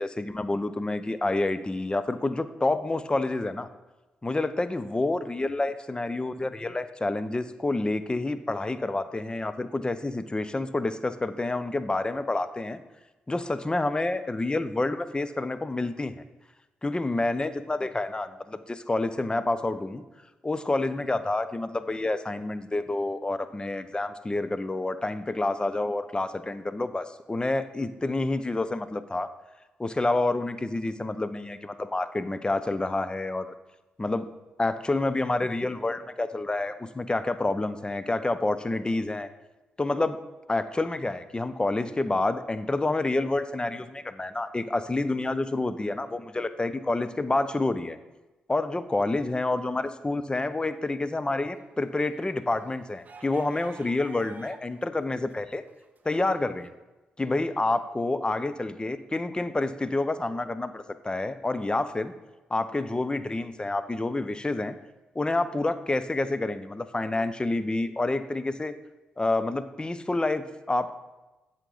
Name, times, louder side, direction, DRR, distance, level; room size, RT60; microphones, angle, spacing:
voice 1, 0.0-3.7 4.2-12.8 13.3-16.1 16.8-20.0 20.4-29.3 29.8-33.5 34.0-34.3 34.6-39.3 39.8-40.2 40.5-48.0 48.5-55.6 56.0-56.7 57.2-62.1 62.5-64.8 65.1-68.7 69.2-70.9, left 2 dB, 20° left, 12 dB, 0.6 m, -28 dB
sound 1, 51.6-54.8 55.1-56.5, right 4 dB, 45° right, 0.7 m, -50 dB
7.9 x 5.9 x 3.9 m, 1.1 s
hypercardioid pair, 45°, 4 cm